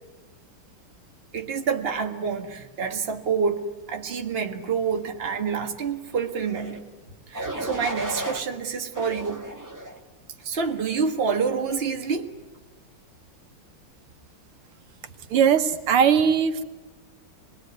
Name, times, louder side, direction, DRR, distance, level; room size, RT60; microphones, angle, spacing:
voice 1, 1.3-6.8 7.3-9.4 10.4-12.3, right 5 dB, 30° right, 4 dB, 1.7 m, -27 dB
sound 1, 6.4-6.8 7.3-8.4 8.9-10.0 10.6-10.9, right 1 dB, 10° right, 2.2 m, -34 dB
voice 2, 15.3-16.6, right 7 dB, 85° right, 8 dB, 2.2 m, -19 dB
27.5 x 21.0 x 9.4 m, 1.2 s
omnidirectional pair, 2.3 m